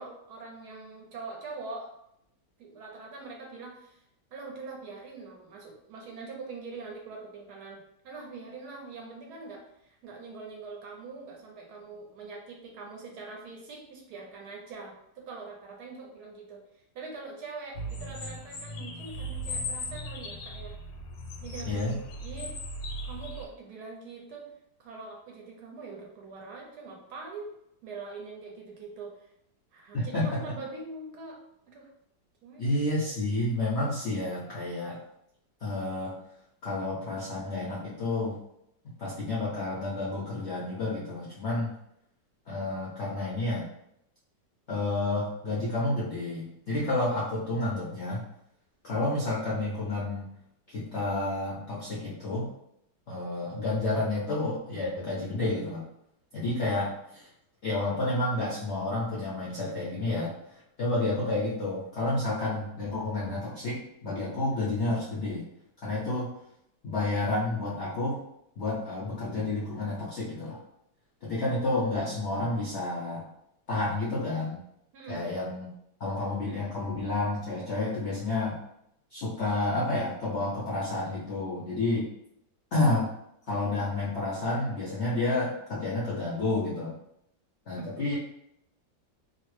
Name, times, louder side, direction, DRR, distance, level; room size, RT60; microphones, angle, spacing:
voice 1, 0.0-1.9 2.6-4.0 4.3-20.8 21.4-21.9 22.2-22.6 23.0-24.5 24.8-27.5 27.8-29.3 29.7-31.4 31.7-31.9 32.4-32.8 74.9-75.3 87.7-88.0, right 3 dB, 70° right, 0 dB, 1.1 m, -43 dB
sound 1, 17.7-23.5, equal, 85° left, 1.3 m, -37 dB
voice 2, 21.6-22.0 29.9-30.4 32.6-35.0 35.6-36.1 36.6-38.4 39.0-41.7 42.5-43.7 44.7-48.2 48.8-50.3 50.7-52.5 53.1-55.8 56.3-57.3 57.6-60.3 60.8-65.5 65.8-66.3 66.8-68.2 68.6-70.6 71.2-73.3 73.7-74.6 75.1-75.7 76.0-78.6 79.1-82.1 82.7-83.1 83.5-87.0 87.7-88.1, left 2 dB, 65° left, -7 dB, 0.6 m, -30 dB
2.9 x 2.0 x 3.1 m, 0.77 s
omnidirectional pair, 1.9 m